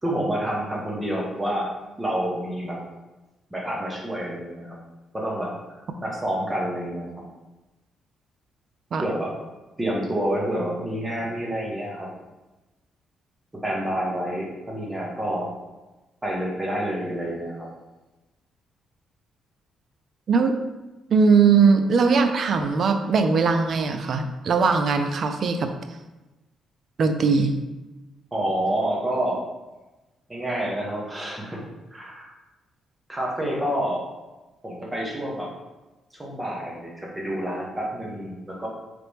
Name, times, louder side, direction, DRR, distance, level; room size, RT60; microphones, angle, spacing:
voice 1, 0.0-1.7 2.0-2.8 3.5-4.8 5.1-5.5 6.0-7.1 9.0-9.3 9.8-12.1 13.6-15.5 16.2-17.7 28.3-29.4 30.3-31.6 31.9-32.3 33.1-34.1 34.6-35.5 36.2-38.7, right 1 dB, 15° right, -3 dB, 1.1 m, -28 dB
voice 2, 20.3-20.6 21.1-25.7 27.0-27.6, right 5 dB, 55° right, 7 dB, 0.4 m, -20 dB
3.8 x 3.3 x 3.4 m, 1.1 s
cardioid pair, 105°, 0 cm